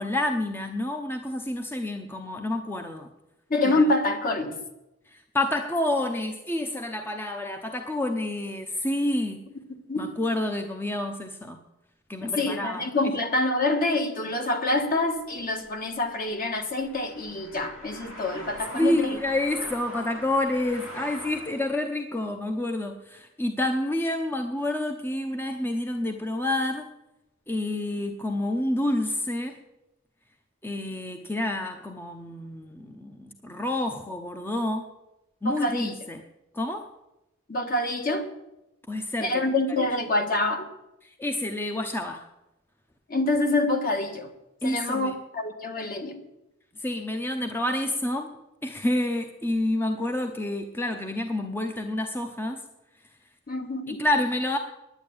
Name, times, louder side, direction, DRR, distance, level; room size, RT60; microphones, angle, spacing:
voice 1, 0.0-3.1 3.6-3.9 5.1-9.4 10.0-11.6 12.1-13.1 18.7-26.9 27.5-29.6 30.6-34.9 35.4-36.2 36.5-36.9 38.9-39.9 41.0-42.3 44.6-45.1 46.8-48.4 48.6-52.6 53.9-54.6, left 1 dB, 10° left, 5 dB, 0.7 m, -28 dB
voice 2, 3.5-4.6 9.9-10.0 12.2-19.2 35.4-35.9 37.5-38.3 39.2-40.7 43.1-44.3 44.6-46.2 53.5-54.0, left 2 dB, 45° left, 5 dB, 1.5 m, -26 dB
sound 1, 14.7-21.9, equal, 75° left, 2.6 m, -43 dB
10.0 x 9.6 x 8.6 m, 0.91 s
head